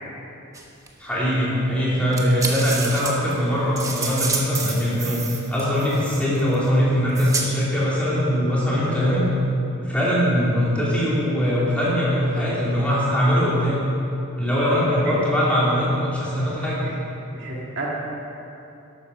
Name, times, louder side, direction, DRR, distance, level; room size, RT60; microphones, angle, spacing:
sound 1, 0.5-0.9 2.1-6.6 7.2-7.5, right 3 dB, 15° right, 0.9 m, -29 dB
voice 1, 1.0-9.2 9.8-13.8 14.4-16.8, equal, 5° left, -8 dB, 3.2 m, -21 dB
voice 2, 14.8-15.2 16.8-16.9 17.3-18.0, right 2 dB, 55° right, -4 dB, 1.8 m, -32 dB
12.5 x 8.6 x 6.0 m, 2.8 s
head